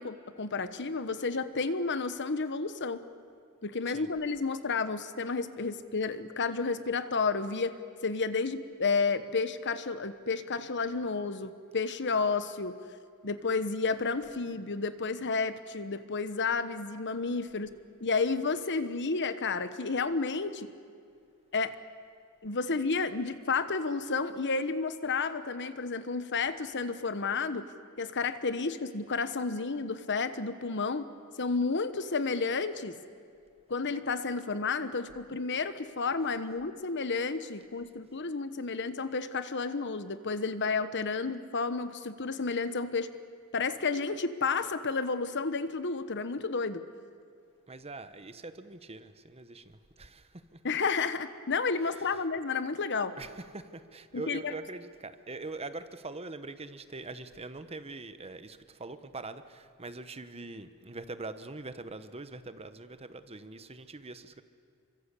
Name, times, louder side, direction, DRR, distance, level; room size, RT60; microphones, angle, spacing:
voice 1, 0.0-3.0 3.6-7.7 8.0-12.8 13.2-17.7 18.0-20.7 21.5-21.7 22.4-27.7 28.0-31.1 31.4-33.0 33.7-43.1 43.5-46.8 50.6-53.2 54.1-54.5, left 4 dB, 55° left, 12 dB, 1.2 m, -31 dB
voice 2, 47.7-50.6 53.2-64.4, right 3 dB, 25° right, 11 dB, 1.1 m, -43 dB
28.0 x 24.5 x 8.4 m, 2.2 s
head